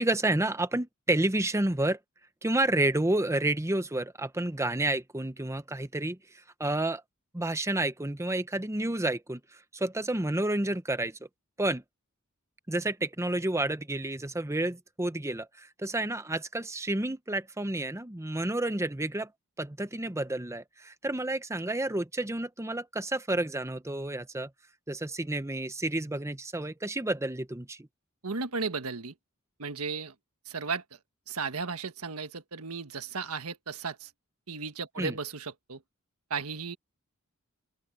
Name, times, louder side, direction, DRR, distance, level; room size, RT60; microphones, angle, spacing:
voice 1, 0.0-2.0 2.4-6.2 6.6-7.0 7.3-9.4 9.7-11.2 11.6-11.8 12.7-19.3 19.6-24.5 24.9-27.9 35.0-35.1, right 1 dB, 15° right, 0.9 m, -30 dB
voice 2, 28.2-29.1 29.6-30.1 30.4-30.8 31.3-34.1 34.5-35.8 36.3-36.8, right 4 dB, 80° right, 1.4 m, -35 dB
open air
head